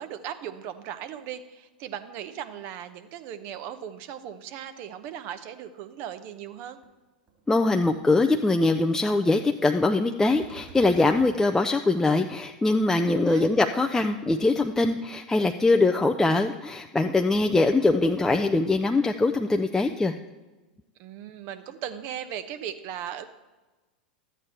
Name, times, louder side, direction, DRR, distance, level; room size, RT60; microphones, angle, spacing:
voice 1, 0.0-6.8 13.0-13.6 21.0-23.3, right 9 dB, 50° right, 10 dB, 0.8 m, -38 dB
sound 1, 6.8-6.9 7.3-7.6 7.8-7.9 10.3-11.4, right 6 dB, 35° right, 2.8 m, -47 dB
voice 2, 7.5-20.1, left 2 dB, 10° left, 5 dB, 0.4 m, -22 dB
12.0 x 8.2 x 4.4 m, 1.2 s
hypercardioid pair, 95°, 5 cm